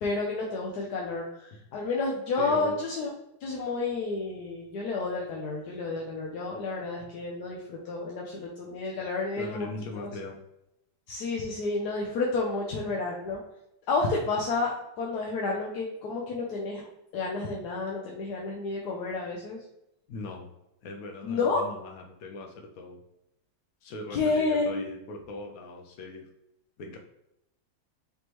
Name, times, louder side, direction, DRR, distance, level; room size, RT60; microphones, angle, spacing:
voice 1, 0.0-3.1 3.4-9.7 10.0-10.1 11.1-13.4 13.9-14.7 15.0-16.8 17.1-19.6 21.2-21.6 24.1-24.9, left 3 dB, 65° left, -2 dB, 1.0 m, -30 dB
voice 2, 2.4-2.8 9.4-10.4 20.1-20.5 20.8-23.0 23.8-26.3 26.8-27.0, left 2 dB, 85° left, 2 dB, 0.7 m, -39 dB
5.2 x 3.1 x 2.9 m, 0.85 s
omnidirectional pair, 2.2 m